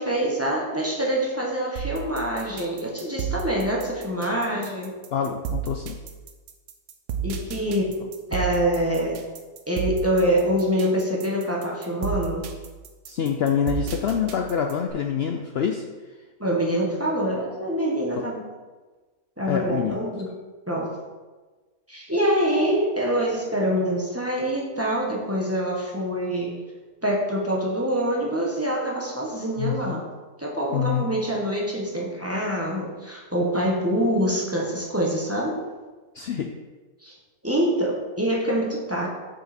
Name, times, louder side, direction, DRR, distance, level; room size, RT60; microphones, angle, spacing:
voice 1, 0.0-5.0 7.2-7.9 8.3-9.2 9.7-12.5 16.4-18.4 19.4-20.3 20.7-20.9 21.9-26.6 27.0-30.0 30.4-35.6 37.0-37.1 37.4-39.1, equal, 10° right, -3 dB, 1.0 m, -25 dB
sound 1, 1.8-14.9, right 6 dB, 85° right, 1.3 m, -32 dB
voice 2, 5.1-6.0 13.1-15.8 18.2-18.3 19.4-20.0 29.6-30.0 30.7-31.1 36.1-36.5, left 8 dB, 90° left, 3 dB, 0.5 m, -26 dB
6.6 x 5.5 x 4.3 m, 1.3 s
omnidirectional pair, 1.7 m